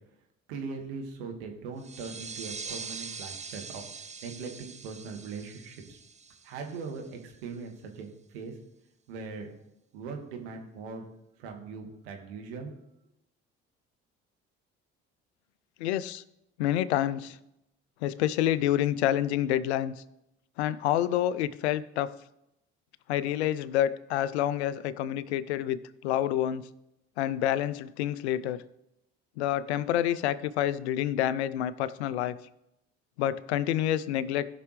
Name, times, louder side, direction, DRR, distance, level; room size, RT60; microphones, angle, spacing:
voice 1, 0.5-3.8 4.2-6.0 6.4-8.6 9.1-9.5 9.9-11.0 11.4-12.7, right 4 dB, 80° right, 2 dB, 1.6 m, -40 dB
sound 1, 1.8-7.1, right 5 dB, 20° right, 0.6 m, -43 dB
voice 2, 15.8-16.2 16.6-17.4 18.0-19.9 20.6-22.1 23.1-26.6 27.2-28.6 29.4-32.4 33.2-34.5, left 12 dB, 85° left, 17 dB, 0.5 m, -28 dB
17.0 x 5.9 x 3.2 m, 0.84 s
hypercardioid pair, 55°, 32 cm